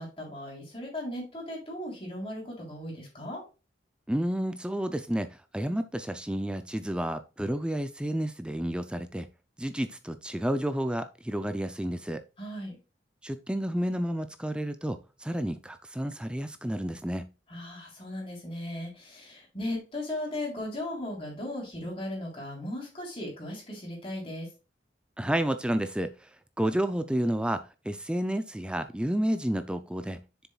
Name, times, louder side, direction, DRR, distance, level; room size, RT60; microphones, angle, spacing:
voice 1, 0.0-3.4 12.4-12.8 17.5-24.5, left 1 dB, 30° left, -2 dB, 3.6 m, -37 dB
voice 2, 4.1-9.3 9.6-12.2 13.2-17.3 25.2-26.3 26.6-30.5, right 1 dB, 5° right, 10 dB, 0.4 m, -31 dB
7.0 x 7.0 x 2.4 m, 0.30 s
head